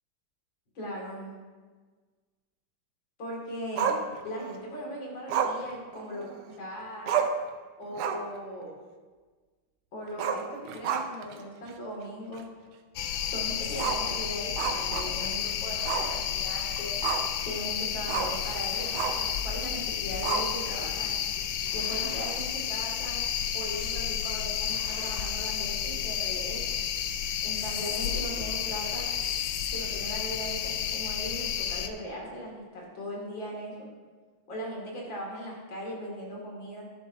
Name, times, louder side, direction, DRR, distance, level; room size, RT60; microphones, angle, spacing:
voice 1, 0.7-1.3 3.2-4.0 4.2-6.3 6.6-7.1 7.8-8.7 9.9-12.5 13.3-17.0 17.4-21.2 21.7-23.2 23.5-26.8 27.4-29.1 29.7-33.9 34.5-36.9, equal, 65° left, -2 dB, 3.0 m, -38 dB
Growling, 3.8-4.6 5.3-6.5 6.8-6.9 7.1-7.5 7.9-8.4 8.7-8.8 10.1-11.3 11.7-11.8 12.3-12.4 13.7-15.4 15.8-16.1 16.5-17.4 18.1-18.4 18.9-19.3 20.2-20.8, right 7 dB, 70° right, 1.0 m, -31 dB
sound 1, 13.0-31.9, left 9 dB, 85° left, 0.8 m, -31 dB
sound 2, 15.6-16.3 18.6-19.5 21.6-22.6 24.6-25.4, left 1 dB, 25° left, 2.3 m, -48 dB
11.5 x 11.0 x 2.7 m, 1.4 s
omnidirectional pair, 2.3 m